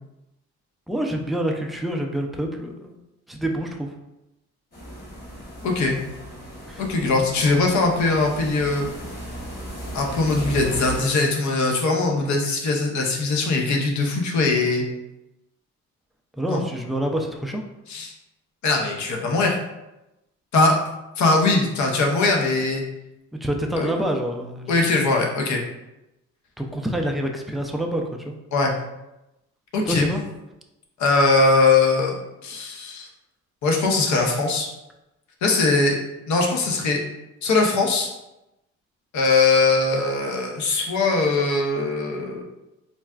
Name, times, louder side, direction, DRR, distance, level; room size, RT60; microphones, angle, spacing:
voice 1, 0.9-3.0 3.3-3.9 6.7-6.8 10.8-11.1 16.4-17.6 23.4-24.8 26.6-28.4 29.9-30.2, right 1 dB, ahead, 2 dB, 0.3 m, -27 dB
sound 1, 4.7-11.0, equal, 35° left, 1.2 m, -36 dB
voice 2, 5.6-6.0 6.8-8.9 9.9-14.8 16.5-16.6 17.9-18.1 18.6-19.6 20.5-20.8 21.2-22.8 23.7-23.9 24.7-25.6 28.5-28.7 29.7-30.1 31.0-32.2 32.4-33.1 33.6-34.7 35.4-36.0 36.3-37.0 37.4-38.1 39.1-42.4, left 3 dB, 70° left, 1 dB, 0.7 m, -21 dB
4.0 x 2.2 x 2.3 m, 0.94 s
cardioid pair, 90°, 30 cm